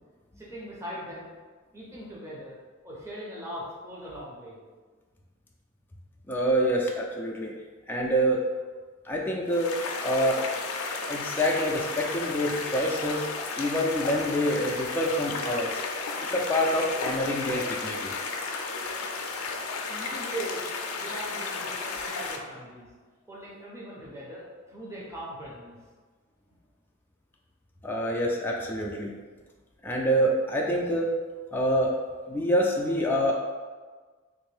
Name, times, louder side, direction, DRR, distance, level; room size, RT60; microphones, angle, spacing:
voice 1, 0.4-1.3 1.7-2.6 2.8-4.6 19.9-20.7 20.9-22.9 23.3-25.8, right 1 dB, 15° right, -6 dB, 0.7 m, -40 dB
voice 2, 6.3-7.5 7.9-8.5 9.0-9.8 10.0-10.4 11.1-13.3 13.6-15.8 16.3-18.1 27.8-29.1 29.8-31.1 31.5-31.9 32.3-33.3, equal, 10° left, -2 dB, 0.3 m, -26 dB
sound 1, 9.5-22.4, left 4 dB, 85° left, 0.4 m, -33 dB
3.4 x 2.5 x 3.3 m, 1.4 s
head